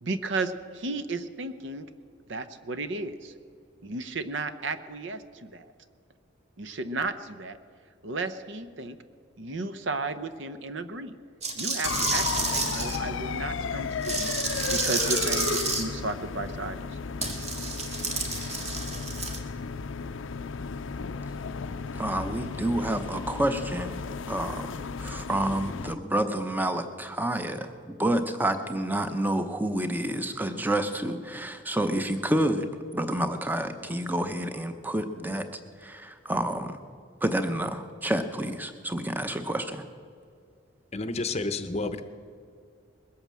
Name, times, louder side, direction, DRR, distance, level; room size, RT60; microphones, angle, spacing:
voice 1, 0.0-1.9 2.3-3.3 3.8-5.7 6.6-7.6 8.0-9.0 9.4-11.2 11.5-14.4 14.7-16.8, right 3 dB, 65° right, 11 dB, 0.8 m, -34 dB
sound 1, 11.4-13.0 14.0-15.8 17.2-19.4, right 3 dB, 30° right, 1.6 m, -30 dB
sound 2, 11.8-25.9, left 5 dB, 70° left, 0.5 m, -34 dB
voice 2, 21.9-24.0 24.3-27.7 28.0-32.7 32.9-35.5 35.8-36.8 37.2-39.8, right 1 dB, 10° right, 8 dB, 0.7 m, -29 dB
voice 3, 40.9-42.0, left 3 dB, 30° left, 10 dB, 0.7 m, -30 dB
21.0 x 8.7 x 7.5 m, 2.3 s
head